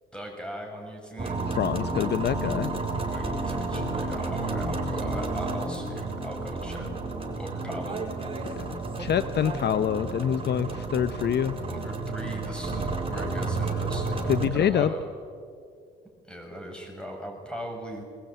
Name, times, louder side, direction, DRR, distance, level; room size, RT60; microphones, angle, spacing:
voice 1, 0.1-1.4 3.0-6.9 7.3-8.0 11.7-15.1 16.3-18.0, equal, 5° left, 2 dB, 7.3 m, -39 dB
sound 1, 1.2-14.5, right 3 dB, 30° right, 4.5 m, -31 dB
voice 2, 1.5-2.7 8.7-11.5 14.3-14.9, left 9 dB, 60° left, 13 dB, 0.7 m, -26 dB
21.0 x 21.0 x 9.2 m, 2.3 s
cardioid pair, 90°, 20 cm